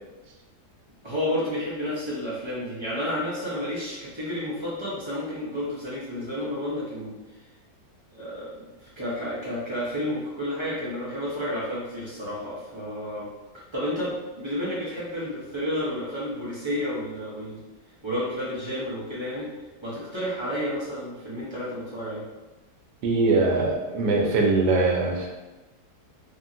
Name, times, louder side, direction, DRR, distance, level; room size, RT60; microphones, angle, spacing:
voice 1, 1.0-7.1 8.1-13.3 13.7-17.6 18.0-19.5 19.8-22.2, left 1 dB, 35° right, -9 dB, 0.4 m, -31 dB
voice 2, 23.0-25.3, right 3 dB, 85° right, 0 dB, 1.3 m, -22 dB
2.9 x 2.7 x 2.5 m, 1.1 s
omnidirectional pair, 1.8 m